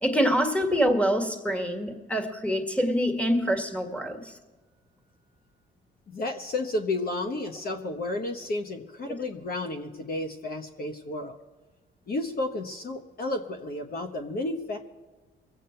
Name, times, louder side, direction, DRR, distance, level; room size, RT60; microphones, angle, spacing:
voice 1, 0.0-4.3, equal, 5° left, 5 dB, 1.9 m, -25 dB
voice 2, 6.1-11.4 12.1-14.8, left 2 dB, 50° left, 5 dB, 1.1 m, -32 dB
22.0 x 8.3 x 4.5 m, 1.3 s
cardioid pair, 90°, 20 cm